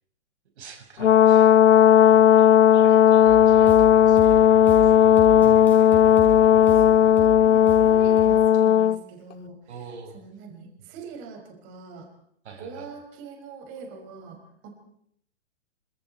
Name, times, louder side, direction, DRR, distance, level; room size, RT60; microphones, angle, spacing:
voice 1, 0.6-1.5 2.1-4.9 9.7-10.2 12.4-12.9, right 5 dB, 60° right, 3 dB, 5.9 m, -45 dB
Brass instrument, 1.0-9.0, left 10 dB, 70° left, 0.9 m, -16 dB
sound 1, 3.3-8.4, right 2 dB, 5° left, 6.0 m, -36 dB
voice 2, 6.1-9.9 10.1-12.1 12.6-14.7, right 4 dB, 35° right, 3 dB, 6.2 m, -43 dB
28.5 x 26.5 x 4.6 m, 0.69 s
hypercardioid pair, 135°, 37 cm